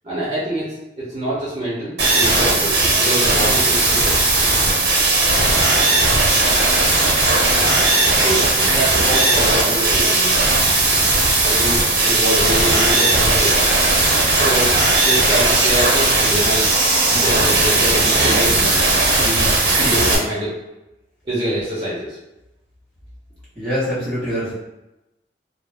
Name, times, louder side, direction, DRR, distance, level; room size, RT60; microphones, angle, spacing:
voice 1, 0.0-4.2 8.0-10.4 11.4-13.7 14.3-14.7 15.0-16.7 17.1-19.5 19.8-20.6 21.2-22.2, right 1 dB, 25° right, -9 dB, 0.7 m, -25 dB
sound 1, 2.0-20.2, right 2 dB, 70° right, 0.8 m, -16 dB
voice 2, 23.5-24.5, equal, 5° left, -12 dB, 1.2 m, -24 dB
2.3 x 2.0 x 3.3 m, 0.95 s
head